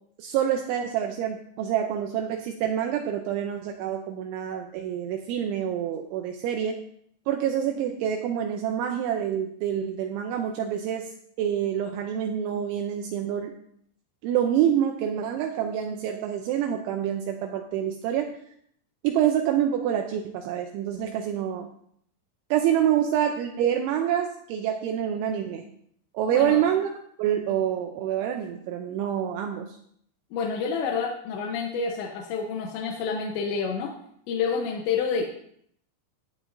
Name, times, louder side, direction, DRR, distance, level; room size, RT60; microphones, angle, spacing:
voice 1, 0.2-6.8 7.3-11.1 11.4-13.6 14.2-18.3 19.0-21.7 22.5-25.6 26.1-26.9 27.2-29.8, right 10 dB, 80° right, 4 dB, 2.8 m, -27 dB
voice 2, 26.3-26.6 30.3-33.9 34.3-35.3, left 5 dB, 75° left, 0 dB, 2.9 m, -28 dB
15.0 x 9.1 x 2.7 m, 0.67 s
omnidirectional pair, 5.8 m